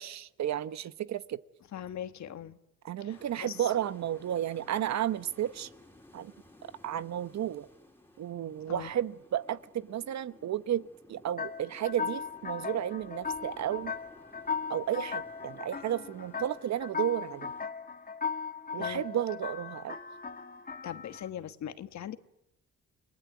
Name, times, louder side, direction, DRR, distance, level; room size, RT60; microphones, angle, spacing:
voice 1, 0.0-1.4 2.8-5.7 6.1-6.3 6.8-7.7 8.2-13.9 14.7-17.5 18.7-20.0, right 11 dB, 65° right, 15 dB, 1.1 m, -33 dB
voice 2, 1.7-2.6 3.0-3.7 8.7-8.9 18.8-19.0 20.8-22.2, left 10 dB, 65° left, 12 dB, 1.6 m, -40 dB
sound 1, 3.1-17.6, left 1 dB, 5° left, 3.9 m, -56 dB
sound 2, 11.4-21.3, left 5 dB, 30° left, 1.9 m, -38 dB
29.0 x 20.0 x 9.4 m, 0.86 s
cardioid pair, 90°, 30 cm